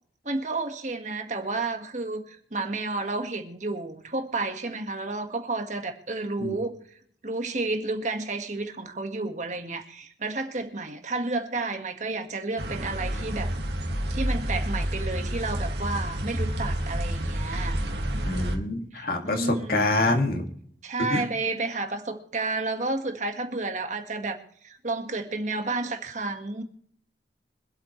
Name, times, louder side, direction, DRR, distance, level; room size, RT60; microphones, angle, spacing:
voice 1, 0.2-6.7 7.2-13.5 14.1-17.8 18.9-19.9 20.8-24.4 24.6-26.6, right 3 dB, 45° right, 1.7 m, -31 dB
sound 1, 12.6-18.6, equal, 70° right, 2.1 m, -29 dB
voice 2, 18.2-20.4 21.1-21.2, left 2 dB, 55° left, 2.3 m, -26 dB
25.0 x 8.5 x 3.2 m
head